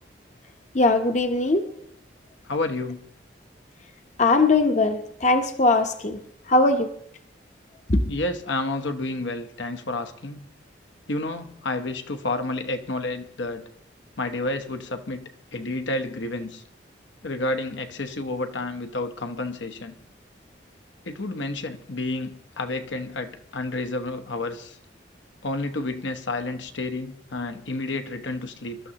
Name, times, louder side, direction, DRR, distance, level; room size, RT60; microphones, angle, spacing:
voice 1, 0.7-1.7 4.2-6.2 6.5-6.9 7.9-8.0, left 2 dB, 40° left, 6 dB, 0.8 m, -20 dB
voice 2, 2.4-3.0 8.1-10.5 11.1-13.7 14.2-16.6 17.2-19.9 21.0-24.8 25.4-28.8, left 2 dB, 80° left, 6 dB, 1.1 m, -30 dB
24.5 x 12.5 x 2.9 m, 0.66 s
head